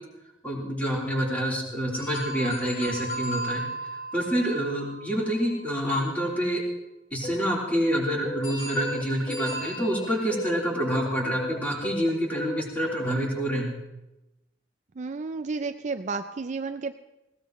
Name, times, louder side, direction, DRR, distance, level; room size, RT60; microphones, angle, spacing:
voice 1, 0.4-3.6 4.1-6.6 7.1-13.7, equal, 10° left, -4 dB, 3.8 m, -27 dB
sound 1, 1.9-6.0 8.4-10.8, right 1 dB, 60° left, 5.3 m, -37 dB
sound 2, 7.2-13.4, left 1 dB, 30° left, 0.4 m, -35 dB
voice 2, 15.0-17.0, right 4 dB, 40° right, 8 dB, 0.4 m, -32 dB
20.0 x 17.0 x 3.1 m, 0.97 s
head